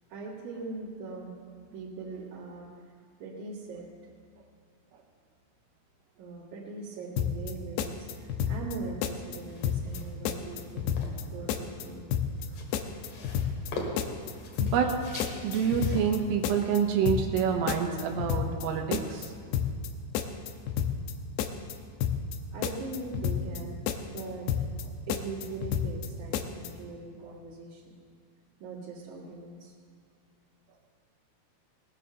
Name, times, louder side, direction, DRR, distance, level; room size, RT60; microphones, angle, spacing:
voice 1, 0.1-1.3 1.7-2.9 3.2-3.9 6.2-12.1 12.5-12.6 22.5-23.8 24.1-24.5 25.1-28.0 28.6-29.7, right 3 dB, 50° right, -8 dB, 2.6 m, -41 dB
sound 1, 7.2-7.5 7.8-8.8 9.0-9.4 9.6-10.0 10.3-11.2 11.5-11.8 12.1-12.5 12.7-13.7 14.0-14.3 14.6-14.9 15.2-16.2 16.4-16.8 17.1-17.4 17.7-18.7 18.9-19.3 19.5-19.9 20.1-21.1 21.4-21.7 22.0-22.4 22.6-23.6 23.9-24.2 24.5-24.8 25.1-26.1 26.3-26.7, left 9 dB, 90° left, 2.4 m, -30 dB
sound 2, 9.4-17.9, left 2 dB, 65° left, 3.7 m, -44 dB
voice 2, 14.6-19.3, right 7 dB, 80° right, 3 dB, 3.7 m, -28 dB
18.5 x 9.9 x 6.7 m, 2.1 s
omnidirectional pair, 5.8 m